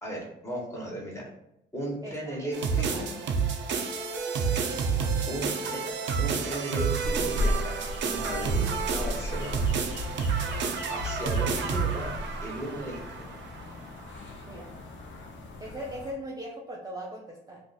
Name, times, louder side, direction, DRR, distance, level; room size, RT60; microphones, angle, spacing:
voice 1, 0.0-1.2 1.7-3.2 5.3-5.8 6.2-8.7 8.9-9.7 10.9-13.3, right 1 dB, 15° left, -3 dB, 1.2 m, -36 dB
voice 2, 2.0-2.5 2.9-3.0 14.4-14.7 15.6-17.6, equal, 20° right, -3 dB, 0.5 m, -39 dB
sound 1, 2.5-13.6, right 5 dB, 65° right, 0.5 m, -30 dB
sound 2, 7.0-16.1, left 1 dB, 70° left, 0.6 m, -35 dB
2.4 x 2.4 x 3.9 m, 0.80 s
cardioid pair, 90°, 20 cm